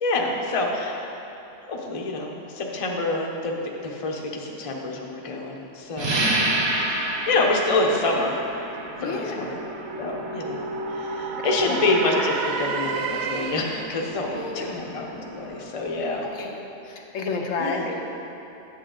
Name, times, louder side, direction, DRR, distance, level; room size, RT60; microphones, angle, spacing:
voice 1, 0.0-1.0 1.7-3.6 3.8-6.2 6.9-8.4 9.0-9.6 10.0-16.2 17.6-17.9, left 2 dB, 35° left, 0 dB, 0.7 m, -27 dB
sound 1, 6.0-16.3, right 1 dB, 30° right, 0.5 m, -31 dB
sound 2, 8.7-13.9, right 5 dB, 65° right, 0.7 m, -32 dB
voice 2, 9.0-9.5 11.6-11.8 12.2-12.3 14.3-14.8 16.2-16.6 16.8-18.0, left 4 dB, 85° left, 1 dB, 1.2 m, -31 dB
8.6 x 7.5 x 3.8 m, 2.9 s
omnidirectional pair, 1.3 m